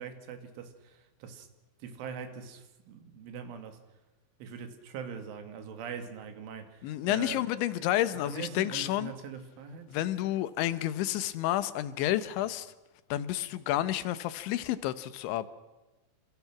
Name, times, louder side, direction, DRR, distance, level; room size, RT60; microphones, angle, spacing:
voice 1, 0.0-1.5 1.8-3.8 4.4-7.4 8.2-9.9, right 7 dB, 85° right, 7 dB, 4.6 m, -42 dB
voice 2, 6.8-9.1 9.9-12.7 13.1-15.5, left 14 dB, 80° left, 14 dB, 3.3 m, -30 dB
28.5 x 27.5 x 6.1 m, 1.1 s
omnidirectional pair, 5.4 m